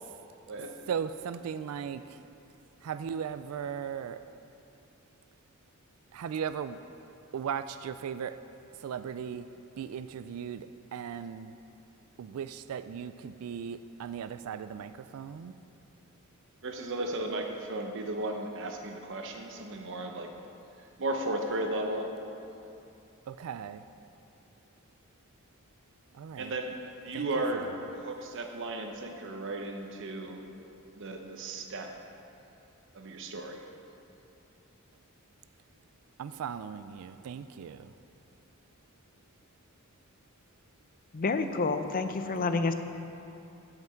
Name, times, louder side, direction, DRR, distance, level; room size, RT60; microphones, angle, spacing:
voice 1, 0.9-2.2 2.8-4.2 6.1-6.8 7.3-8.4 8.8-9.5 9.8-11.6 12.2-15.6 23.3-23.8 26.1-26.5 27.1-27.3 36.2-37.9, right 7 dB, 90° right, 12 dB, 0.3 m, -37 dB
voice 2, 16.6-20.3 21.0-22.1 26.4-26.8 27.0-30.4 30.9-31.9 32.9-33.6, right 2 dB, 60° right, 3 dB, 1.0 m, -35 dB
voice 3, 41.1-42.7, left 3 dB, 40° left, 8 dB, 0.5 m, -28 dB
15.5 x 5.9 x 4.5 m, 2.8 s
head